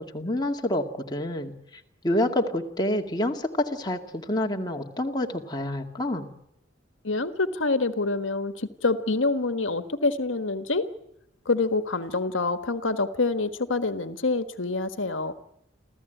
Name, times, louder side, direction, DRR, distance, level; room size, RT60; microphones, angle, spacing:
voice 1, 0.0-1.5 2.0-6.3, left 1 dB, 20° left, 2 dB, 2.2 m, -28 dB
voice 2, 7.0-10.8 11.4-15.3, left 3 dB, 85° left, 10 dB, 1.5 m, -26 dB
27.5 x 15.5 x 9.2 m, 0.79 s
head